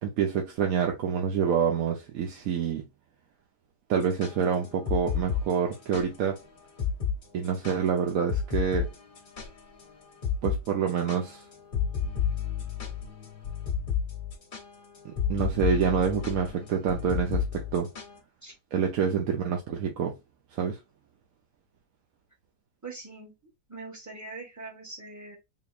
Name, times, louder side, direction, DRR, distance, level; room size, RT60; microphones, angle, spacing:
voice 1, 0.0-2.9 3.9-6.4 7.3-8.9 10.4-11.4 15.0-17.9 18.7-20.1 20.5-20.8, right 7 dB, 65° right, 1.0 m, -27 dB
sound 1, 4.0-6.1 6.4-6.5 6.8-7.2 7.4-9.8 10.2-10.6 10.9-18.2, left 7 dB, 40° left, 0.8 m, -31 dB
voice 2, 22.8-25.4, right 3 dB, 10° right, 1.1 m, -43 dB
3.9 x 2.9 x 2.4 m
omnidirectional pair, 1.8 m